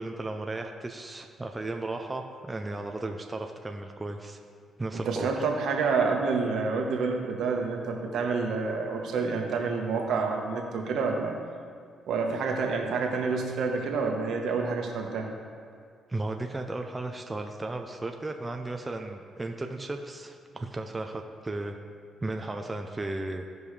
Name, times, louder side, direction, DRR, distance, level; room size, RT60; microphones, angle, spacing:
voice 1, 0.0-4.4 4.8-5.4 16.1-21.8 22.2-23.4, right 2 dB, 20° right, 4 dB, 0.6 m, -35 dB
voice 2, 4.9-11.3 12.1-15.3, right 4 dB, 70° right, 1 dB, 1.3 m, -28 dB
16.0 x 5.3 x 3.3 m, 2.1 s
cardioid pair, 90°, 0 cm